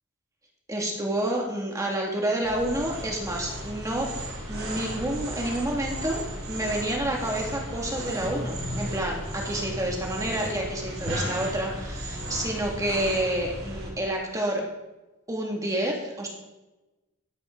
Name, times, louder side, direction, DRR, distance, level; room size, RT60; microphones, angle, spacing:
voice 1, 0.7-4.1 4.5-14.6 15.3-16.3, right 1 dB, 15° right, -1 dB, 2.0 m, -29 dB
sound 1, 2.4-13.9, right 1 dB, 65° right, 3.5 m, -34 dB
13.0 x 11.0 x 3.8 m, 1.0 s
head